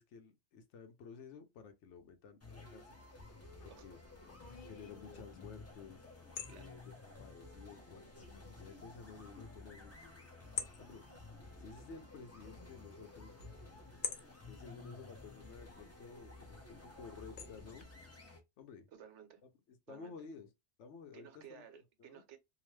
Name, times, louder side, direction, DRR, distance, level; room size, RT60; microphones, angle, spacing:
voice 1, 0.0-3.0 3.6-4.0 4.7-6.1 6.5-10.0 10.8-11.0 11.6-13.4 14.5-17.9 18.6-18.9 19.9-20.5 20.8-21.6 22.0-22.2, left 5 dB, 80° left, 1.0 m, -53 dB
sound 1, 2.4-18.4, left 2 dB, 20° left, 0.5 m, -54 dB
sound 2, 3.2-17.8, left 7 dB, 55° left, 0.6 m, -51 dB
voice 2, 18.9-19.4 19.9-20.2 21.1-22.4, right 8 dB, 80° right, 1.0 m, -55 dB
2.9 x 2.1 x 3.0 m
omnidirectional pair, 1.2 m